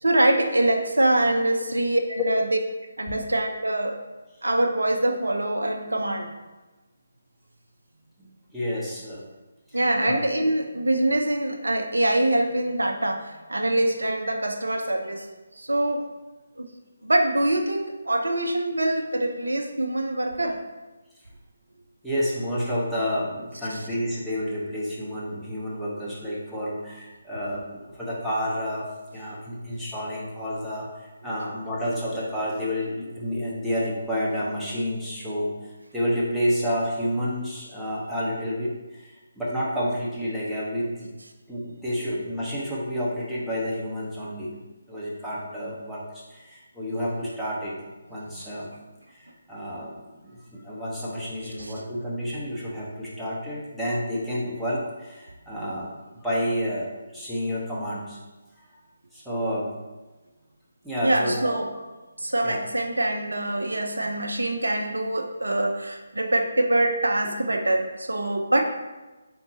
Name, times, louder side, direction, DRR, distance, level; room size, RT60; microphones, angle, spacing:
voice 1, 0.0-2.4 3.0-4.0 4.4-6.3 9.7-15.3 15.6-16.1 16.6-16.7 17.0-20.6 23.7-23.8 51.6-51.7 61.0-61.7 62.2-68.6, right 1 dB, 70° right, 5 dB, 0.4 m, -24 dB
voice 2, 8.2-9.2 10.0-10.2 22.0-28.9 29.1-30.9 31.2-41.1 41.5-44.5 44.9-47.8 48.1-48.7 49.1-58.2 59.1-59.7 60.8-61.6 62.4-62.6, equal, ahead, -9 dB, 0.8 m, -30 dB
4.2 x 3.9 x 3.0 m, 1.2 s
figure-of-eight pair, 145°, 0 cm